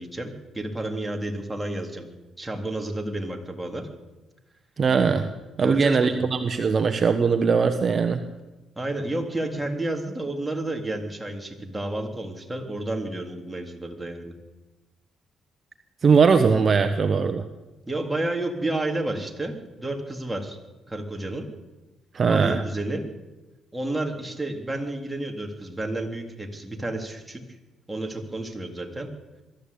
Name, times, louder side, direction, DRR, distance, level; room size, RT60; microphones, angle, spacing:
voice 1, 0.0-2.1 2.4-3.9 5.6-6.3 8.8-14.3 17.9-20.6 20.9-21.5 22.3-23.0 23.7-27.4 27.9-29.1, right 2 dB, 10° right, 3 dB, 3.5 m, -31 dB
voice 2, 4.8-5.3 5.6-8.2 16.0-17.4 22.1-22.6, right 5 dB, 45° right, 8 dB, 1.3 m, -20 dB
23.0 x 13.0 x 8.6 m, 1.1 s
cardioid pair, 90°, 0 cm